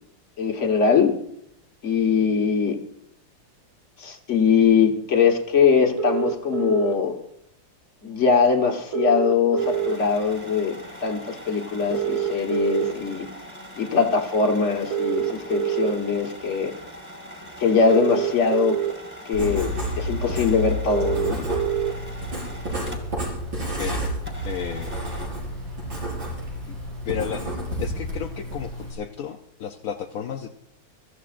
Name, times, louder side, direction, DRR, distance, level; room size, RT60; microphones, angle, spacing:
voice 1, 0.4-1.1 1.8-2.8 4.0-7.1 8.0-13.3 13.8-16.7 17.6-18.8 19.3-21.5, left 5 dB, 40° left, 3 dB, 1.6 m, -22 dB
sound 1, 6.0-6.9 8.9-9.9 11.9-12.9 14.9-15.9 17.9-18.9 20.9-21.9, right 11 dB, 55° right, 1.6 m, -25 dB
sound 2, 9.6-23.3 23.6-23.7 24.2-25.3, equal, 5° right, 2.3 m, -42 dB
Writing, 19.3-28.9, equal, 75° right, 5.9 m, -30 dB
voice 2, 23.8-24.1 24.4-25.0 26.7-26.8 27.0-30.5, left 8 dB, 60° left, 3 dB, 1.0 m, -33 dB
25.0 x 14.0 x 2.5 m, 0.72 s
omnidirectional pair, 2.0 m